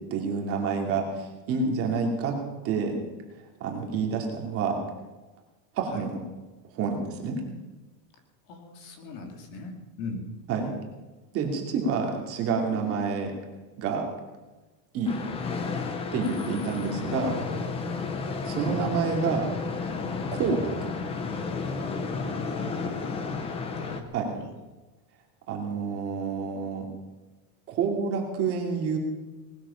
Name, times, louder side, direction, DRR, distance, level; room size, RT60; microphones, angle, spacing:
voice 1, 0.1-2.4 2.6-3.0 3.6-4.8 5.7-6.2 6.7-7.4 10.5-10.8 11.3-13.3 13.8-14.1 14.9-15.2 16.1-17.3 18.5-19.5 20.3-20.9 24.1-24.4 25.5-26.9 27.7-29.0, right 5 dB, 25° right, 1 dB, 2.7 m, -28 dB
voice 2, 8.5-10.3 16.7-17.1 22.4-23.4 23.7-24.5, left 2 dB, 45° left, 4 dB, 2.7 m, -40 dB
sound 1, 15.1-24.0, left 4 dB, 10° left, 0.7 m, -32 dB
19.5 x 12.5 x 5.7 m, 1.2 s
supercardioid pair, 175°, 50 cm